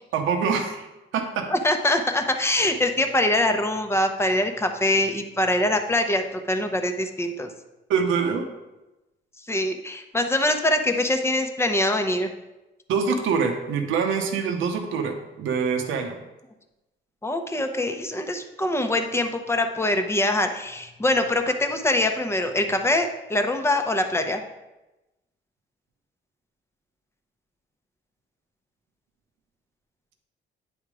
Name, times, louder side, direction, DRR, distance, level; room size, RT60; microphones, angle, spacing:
voice 1, 0.1-0.9 1.1-1.5 7.9-8.5 12.9-16.1, right 6 dB, 85° right, 4 dB, 0.9 m, -25 dB
voice 2, 1.5-7.5 9.5-12.3 17.2-24.4, left 1 dB, 10° left, 6 dB, 0.8 m, -23 dB
9.5 x 3.6 x 4.9 m, 1.0 s
cardioid pair, 90°, 20 cm